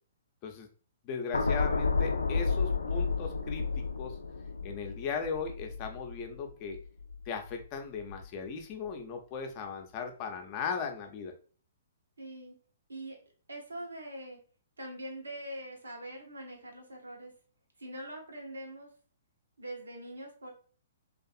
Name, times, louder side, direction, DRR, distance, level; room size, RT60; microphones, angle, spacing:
voice 1, 1.0-4.2 4.6-6.8 7.3-11.3, left 5 dB, 35° left, 4 dB, 0.5 m, -38 dB
sound 1, 1.3-7.6 8.0-8.3, left 4 dB, 85° left, 0.3 m, -32 dB
voice 2, 12.2-12.5 12.9-13.2 13.5-14.4 14.8-17.3 17.8-18.9 19.6-20.5, right 1 dB, 85° right, 1 dB, 0.8 m, -43 dB
2.6 x 2.4 x 2.4 m, 0.41 s
hypercardioid pair, 125°, 0 cm